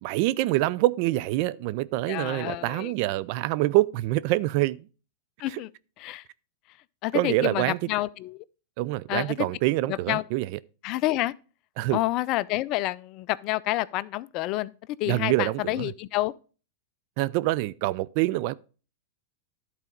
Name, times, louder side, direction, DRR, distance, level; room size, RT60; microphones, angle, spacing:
voice 1, 0.0-4.8 5.5-5.6 7.1-7.9 8.8-10.6 11.8-12.0 15.1-15.9 17.2-18.5, right 17 dB, 55° right, 0.4 m, -25 dB
voice 2, 2.1-2.9 5.4-5.7 6.0-6.2 7.0-8.4 9.1-9.5 9.9-10.2 10.8-11.3 11.9-14.7 15.0-16.3, left 17 dB, 45° left, 0.4 m, -28 dB
11.5 x 4.1 x 5.1 m
hypercardioid pair, 110°, 0 cm